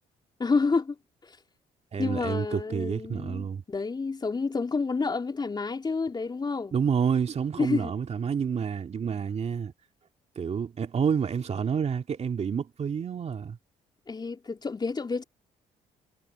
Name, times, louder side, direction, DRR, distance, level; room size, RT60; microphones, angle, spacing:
voice 1, 0.4-1.0 1.2-1.3 2.0-6.7 7.6-7.9 14.1-15.2, left 4 dB, 30° left, 3.9 m, -29 dB
voice 2, 1.9-3.6 6.7-9.7 10.4-13.6, right 7 dB, 45° right, 2.3 m, -29 dB
cardioid pair, 85°, 15 cm